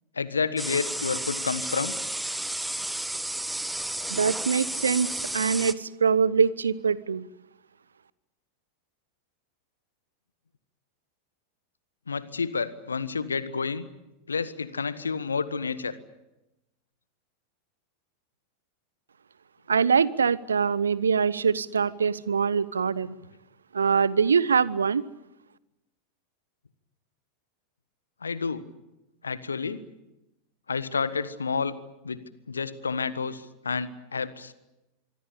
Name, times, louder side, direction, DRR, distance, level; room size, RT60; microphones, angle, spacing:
voice 1, 0.1-1.9 12.1-13.9 14.3-16.0 28.2-28.6 29.2-29.8 30.7-31.7 32.0-34.5, left 5 dB, 75° left, 15 dB, 1.4 m, -30 dB
sound 1, 0.6-5.7, right 1 dB, 5° right, 1.2 m, -32 dB
voice 2, 4.1-7.3 19.7-23.2 23.7-25.0, right 6 dB, 70° right, 20 dB, 0.9 m, -23 dB
25.5 x 23.0 x 8.5 m, 0.98 s
figure-of-eight pair, 90°, 0 cm